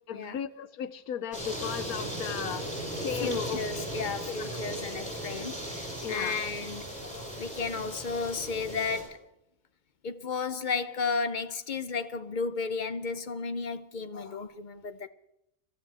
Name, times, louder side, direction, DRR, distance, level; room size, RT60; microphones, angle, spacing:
voice 1, 0.1-2.7 3.0-3.9 4.4-4.6 6.0-6.4, left 8 dB, 85° left, 1.2 m, -36 dB
sound 1, 1.3-9.0, right 1 dB, 5° left, 7.3 m, -37 dB
voice 2, 3.2-9.2 10.0-15.1, left 4 dB, 45° left, 0.6 m, -33 dB
25.5 x 14.0 x 3.4 m
omnidirectional pair, 1.5 m